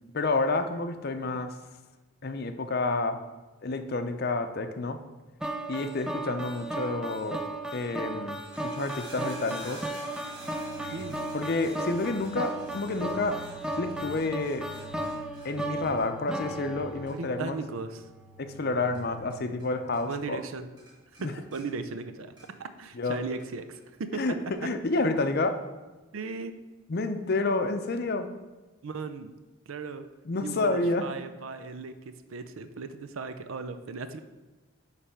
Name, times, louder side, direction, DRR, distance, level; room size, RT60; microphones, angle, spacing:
voice 1, 0.1-1.6 2.2-3.2 3.6-5.0 5.7-7.4 7.7-9.9 10.8-11.0 11.3-13.4 13.8-14.7 15.4-17.5 18.4-20.4 21.2-21.3 22.9-23.2 24.1-25.6 26.9-28.3 30.3-31.1, left 3 dB, 50° left, 8 dB, 0.6 m, -29 dB
sound 1, 5.4-17.6, right 1 dB, 5° right, 0.4 m, -36 dB
sound 2, 8.4-19.7 19.9-20.5 20.8-22.7 23.1-23.8 24.5-24.6, right 1 dB, 20° right, 2.4 m, -50 dB
sound 3, 9.6-20.3, equal, 45° right, 1.1 m, -49 dB
voice 2, 17.0-18.1 20.1-20.7 21.2-24.2 26.1-26.6 28.8-29.3 29.7-30.0 30.4-34.2, right 4 dB, 80° right, 10 dB, 0.5 m, -37 dB
9.7 x 3.3 x 5.7 m, 1.2 s
head